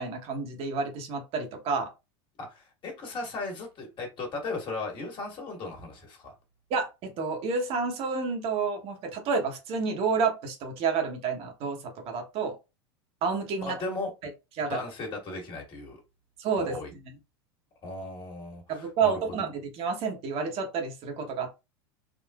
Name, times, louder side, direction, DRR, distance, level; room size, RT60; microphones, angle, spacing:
voice 1, 0.0-1.9 6.7-12.5 13.2-13.8 14.6-14.8 16.4-16.8 18.7-21.6, right 5 dB, 45° right, 3 dB, 1.0 m, -29 dB
voice 2, 2.4-6.3 13.6-14.1 14.7-16.0 16.6-16.9 17.8-19.2, left 3 dB, 35° left, 1 dB, 1.6 m, -36 dB
3.7 x 2.5 x 2.3 m, 0.26 s
hypercardioid pair, 100°, 14 cm